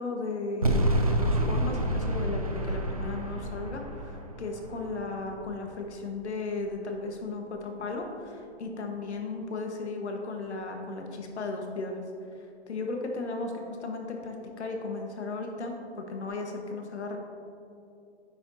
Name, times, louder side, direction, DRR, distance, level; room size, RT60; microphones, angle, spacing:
voice 1, 0.0-12.0 12.3-17.2, left 3 dB, 75° left, 3 dB, 1.4 m, -35 dB
sound 1, 0.6-5.8, right 1 dB, 35° right, 0.4 m, -29 dB
9.7 x 7.0 x 2.7 m, 2.7 s
hypercardioid pair, 180°, 34 cm